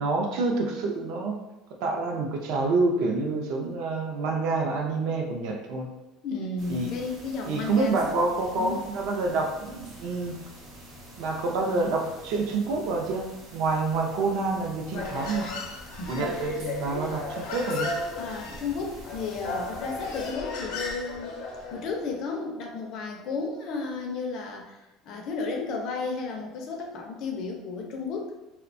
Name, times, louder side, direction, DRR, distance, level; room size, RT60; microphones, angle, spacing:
voice 1, 0.0-1.4 1.8-5.9 6.7-6.9 7.5-10.4 11.2-15.7 16.1-17.9, right 3 dB, 60° right, 1 dB, 0.4 m, -27 dB
voice 2, 6.2-8.2 8.6-8.8 16.0-16.6 18.2-21.4 21.7-28.3, left 4 dB, 45° left, 2 dB, 0.4 m, -33 dB
sound 1, 6.6-20.3, right 1 dB, 85° right, 1.0 m, -47 dB
Human voice, 14.9-22.0, left 3 dB, 90° left, 0.6 m, -35 dB
2.5 x 2.1 x 2.5 m, 1.0 s
cardioid pair, 180°, 0 cm